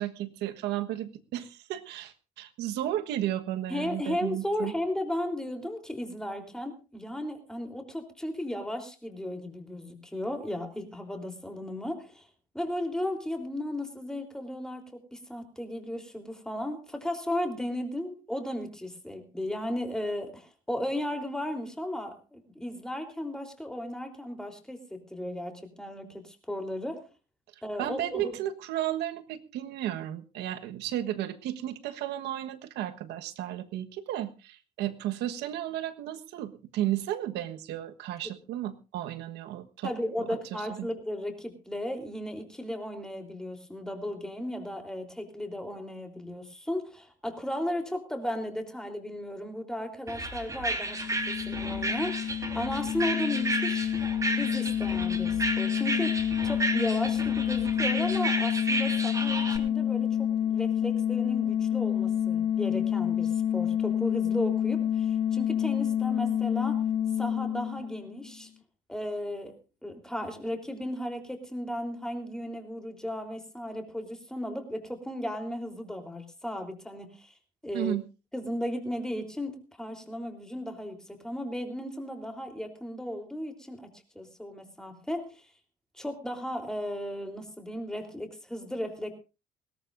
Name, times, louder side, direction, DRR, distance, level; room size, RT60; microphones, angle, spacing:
voice 1, 0.0-4.7 27.8-39.9 40.5-40.9 77.7-78.0, right 12 dB, 85° right, 9 dB, 1.3 m, -33 dB
voice 2, 3.7-12.3 12.5-27.1 27.6-28.3 38.2-38.3 39.8-53.9 54.3-66.9 67.2-68.5 68.9-69.5 69.8-77.3 77.6-77.9 78.3-83.9 84.2-85.5 85.9-89.1, left 1 dB, 5° left, 4 dB, 3.5 m, -35 dB
sound 1, 50.1-59.6, right 2 dB, 20° right, 3.9 m, -32 dB
sound 2, 50.8-68.3, left 9 dB, 35° left, 1.0 m, -28 dB
21.0 x 17.5 x 2.6 m, 0.31 s
cardioid pair, 110°, 17 cm